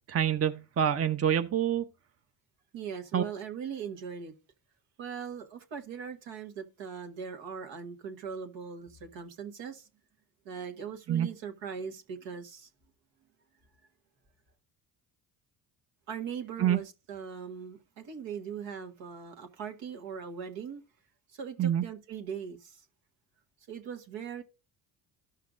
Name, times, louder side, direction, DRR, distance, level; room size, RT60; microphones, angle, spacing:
voice 1, 0.1-1.8 3.1-3.2 11.1-11.3 16.6-16.8 21.6-21.8, right 9 dB, 30° right, 0.7 m, -26 dB
voice 2, 2.7-4.3 5.0-9.9 10.4-12.7 16.1-20.8 21.3-22.8 23.7-24.4, right 7 dB, 75° right, 1.7 m, -40 dB
14.0 x 5.7 x 2.5 m
supercardioid pair, 75°, 45 cm